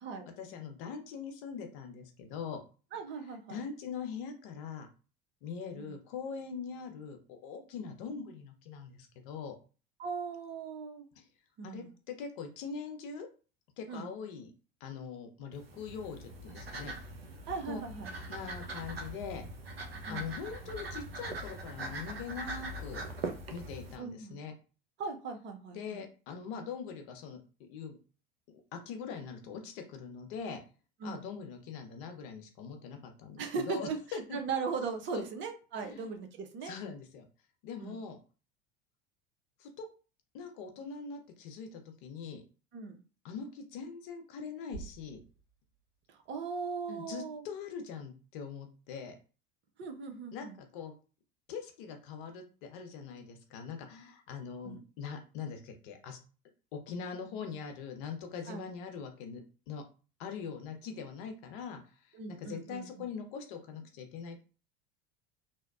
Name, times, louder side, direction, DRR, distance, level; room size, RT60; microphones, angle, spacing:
voice 1, 0.4-2.6 3.5-4.9 5.4-9.6 11.2-11.3 11.6-13.3 13.8-14.5 14.8-17.0 17.7-17.8 18.3-19.5 20.1-23.0 23.5-24.5 25.7-28.0 28.7-30.6 31.0-34.4 35.1-35.2 35.8-36.1 36.6-37.3 37.6-38.2 39.6-39.9 40.3-42.4 43.2-45.2 46.9-49.2 50.3-50.9 51.5-56.2 56.7-59.8 60.2-64.4, left 6 dB, 60° left, 5 dB, 0.7 m, -42 dB
voice 2, 2.9-3.6 5.8-5.9 10.0-11.0 11.6-11.9 13.9-14.1 17.5-18.1 20.1-20.3 24.0-24.4 25.0-26.0 31.0-31.3 33.4-34.0 34.3-36.7 37.8-38.0 42.7-43.0 46.1-47.4 49.8-50.6 54.6-54.8 58.5-58.6 62.2-62.9, right 5 dB, 40° right, 6 dB, 0.7 m, -38 dB
sound 1, 15.5-24.0, right 2 dB, 90° right, 0.5 m, -42 dB
sound 2, 44.7-46.8, right 4 dB, 75° right, 1.1 m, -50 dB
2.7 x 2.1 x 2.3 m, 0.35 s
hypercardioid pair, 75°, 29 cm